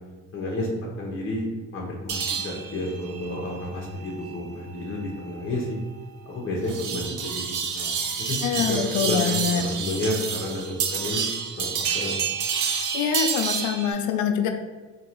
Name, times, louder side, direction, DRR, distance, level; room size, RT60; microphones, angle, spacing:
voice 1, 0.3-5.8 6.3-7.5 7.7-7.9 8.2-11.2 11.5-12.1, left 1 dB, 45° left, -3 dB, 0.9 m, -31 dB
sound 1, 2.1-13.9, right 6 dB, 85° right, 0.6 m, -30 dB
voice 2, 8.4-9.7 12.9-14.5, left 7 dB, 80° left, 6 dB, 0.5 m, -25 dB
3.7 x 2.9 x 3.0 m, 1.3 s
cardioid pair, 90°, 30 cm